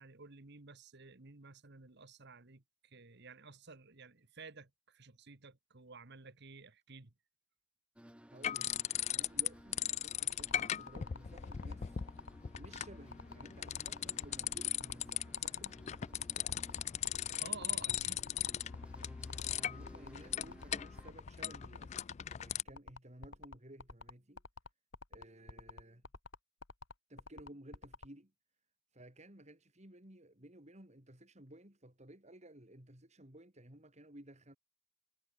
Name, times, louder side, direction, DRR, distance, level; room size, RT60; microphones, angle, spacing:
voice 1, 0.0-7.1 17.4-18.2, right 4 dB, 55° right, 1.5 m, -53 dB
sound 1, 8.0-21.1, equal, 5° right, 1.0 m, -58 dB
voice 2, 8.3-8.8 9.1-12.0 12.5-15.8 19.5-22.1 22.4-24.4 25.1-26.0 27.1-28.3 28.9-34.6, right 1 dB, 35° right, 4.1 m, -56 dB
sound 2, 8.4-9.5 9.7-22.6, left 11 dB, 35° left, 0.3 m, -38 dB
sound 3, 10.3-28.1, left 3 dB, 65° left, 2.1 m, -49 dB
head